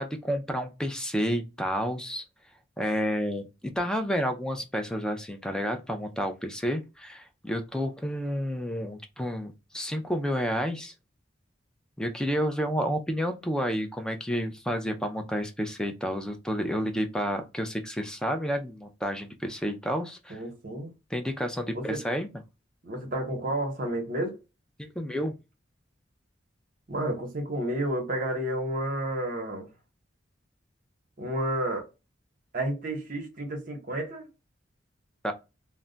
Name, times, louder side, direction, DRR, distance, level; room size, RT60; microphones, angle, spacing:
voice 1, 0.0-2.2 2.8-3.5 3.8-10.9 12.0-20.4 21.1-22.3 24.8-25.3 35.2-35.3, equal, 5° left, 0.3 m, -30 dB
voice 2, 20.3-20.9 21.7-22.0 22.8-24.4 26.9-29.7 31.2-31.8 32.5-34.3, right 1 dB, 45° right, 0.8 m, -31 dB
2.2 x 2.1 x 3.7 m
head